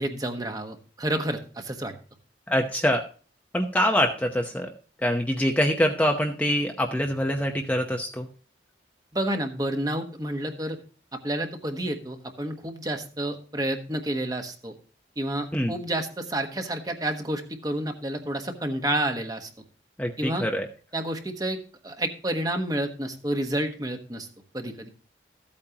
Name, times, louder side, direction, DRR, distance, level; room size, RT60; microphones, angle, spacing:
voice 1, 0.0-1.9 9.1-10.8 11.1-14.7 15.2-19.5 20.2-20.5 20.9-21.6 21.8-24.3 24.5-24.9, right 1 dB, 20° right, 5 dB, 1.2 m, -30 dB
voice 2, 2.5-3.0 3.5-4.7 5.0-8.3 15.5-15.7 20.0-20.7, equal, 10° left, 2 dB, 0.8 m, -24 dB
14.0 x 8.6 x 2.9 m, 0.38 s
head